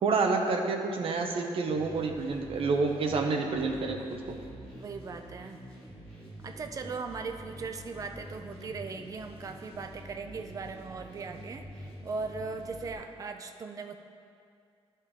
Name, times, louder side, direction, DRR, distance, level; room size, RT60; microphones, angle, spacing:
voice 1, 0.0-4.4, right 4 dB, 60° right, 3 dB, 0.8 m, -28 dB
sound 1, 1.6-12.9, equal, 10° left, 1.9 m, -47 dB
voice 2, 4.7-5.6 6.4-14.0, right 4 dB, 35° right, 6 dB, 0.4 m, -39 dB
11.5 x 5.5 x 3.7 m, 2.4 s
wide cardioid pair, 170°, 11 cm